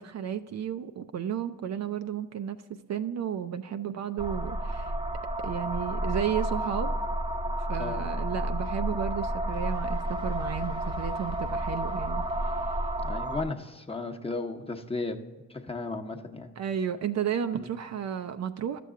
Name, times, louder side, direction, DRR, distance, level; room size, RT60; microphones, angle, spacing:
voice 1, 0.0-2.6 2.9-4.9 5.4-7.0 7.7-12.9 16.6-18.8, right 9 dB, 50° right, 8 dB, 0.5 m, -33 dB
sound 1, 4.2-13.4, right 1 dB, 15° right, 0.7 m, -31 dB
voice 2, 13.0-15.2 15.5-16.5 17.6-17.7, left 3 dB, 15° left, 4 dB, 0.9 m, -35 dB
12.0 x 6.8 x 3.7 m, 1.3 s
cardioid pair, 75°, 35 cm